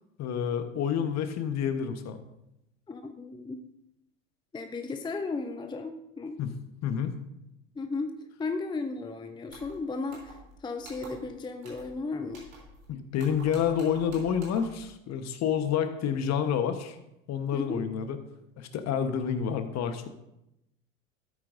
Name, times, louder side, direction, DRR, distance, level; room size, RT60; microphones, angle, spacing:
voice 1, 0.2-2.2 6.4-6.5 6.8-7.1 12.9-17.0 17.3-18.2 18.6-20.1, left 8 dB, 40° left, 9 dB, 1.1 m, -29 dB
voice 2, 2.9-3.6 4.5-6.4 7.8-12.5 17.5-17.8, left 3 dB, 10° left, 6 dB, 0.6 m, -35 dB
sound 1, 9.5-9.8 10.1-10.5 10.8-11.3 11.6-11.9 12.3-12.9 13.2-14.8, right 1 dB, 85° right, 3.6 m, -49 dB
13.0 x 8.6 x 2.6 m, 0.86 s
hypercardioid pair, 80°, 39 cm